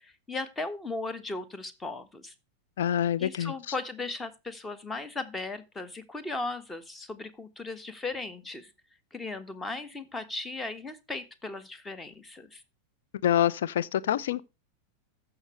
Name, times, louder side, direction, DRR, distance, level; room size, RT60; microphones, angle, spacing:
voice 1, 0.0-2.3 3.2-8.7 9.1-12.6, left 3 dB, 15° left, 1.4 m, -37 dB
voice 2, 2.8-3.5 13.2-14.4, left 10 dB, 60° left, 0.6 m, -26 dB
14.5 x 6.1 x 3.2 m
figure-of-eight pair, 90°, 0 cm